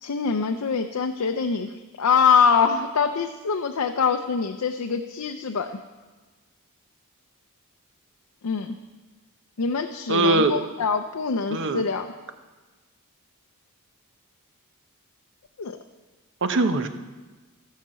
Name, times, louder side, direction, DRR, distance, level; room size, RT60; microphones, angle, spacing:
voice 1, 0.0-1.7 2.0-5.8 8.4-8.8 9.6-12.1 15.6-15.8, left 5 dB, 75° left, 5 dB, 0.6 m, -24 dB
voice 2, 10.1-10.6 11.5-11.8 16.4-16.9, right 2 dB, 55° right, 9 dB, 0.8 m, -21 dB
15.0 x 5.8 x 7.5 m, 1.3 s
head